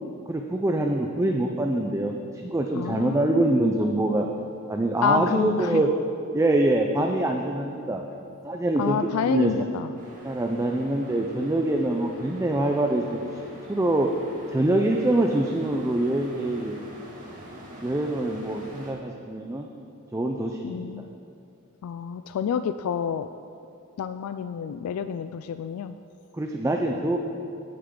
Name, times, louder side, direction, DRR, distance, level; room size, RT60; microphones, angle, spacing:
voice 1, 0.3-4.3 4.7-5.9 6.3-8.0 8.4-9.5 10.2-13.4 13.7-14.1 14.5-16.8 17.8-19.7 20.1-20.9 26.3-27.2, right 1 dB, 15° right, 2 dB, 0.4 m, -24 dB
voice 2, 2.7-3.6 5.0-5.9 8.8-9.9 20.6-21.1 21.8-23.3 24.0-26.0, left 7 dB, 80° left, 10 dB, 0.3 m, -28 dB
sound 1, 10.0-18.9, equal, 40° right, 2.0 m, -45 dB
16.5 x 6.7 x 3.8 m, 2.6 s
head